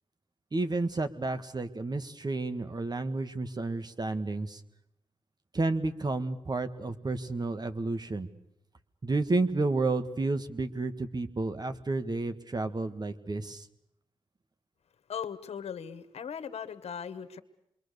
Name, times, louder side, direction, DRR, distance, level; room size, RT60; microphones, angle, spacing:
voice 1, 0.5-4.6 5.5-8.3 9.0-13.7, right 3 dB, 40° right, 9 dB, 1.7 m, -31 dB
voice 2, 15.1-17.4, left 7 dB, 70° left, 10 dB, 1.4 m, -38 dB
27.0 x 22.5 x 6.8 m, 0.82 s
supercardioid pair, 45°, 11 cm